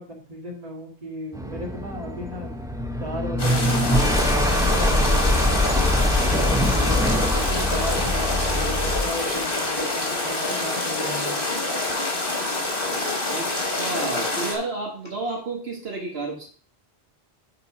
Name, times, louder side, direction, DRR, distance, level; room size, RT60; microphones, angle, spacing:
voice 1, 0.0-2.5 3.0-5.4 5.9-11.4, equal, 40° right, -1 dB, 2.0 m, -36 dB
sound 1, 1.3-9.2, left 1 dB, 5° right, 0.4 m, -23 dB
sound 2, 3.4-14.6, left 2 dB, 60° left, 2.0 m, -26 dB
Mechanisms, 4.1-14.7 15.0-15.1, left 1 dB, 25° left, 2.9 m, -40 dB
voice 2, 13.3-16.5, right 3 dB, 75° right, 0 dB, 1.6 m, -31 dB
7.7 x 4.1 x 5.7 m, 0.43 s
omnidirectional pair, 1.1 m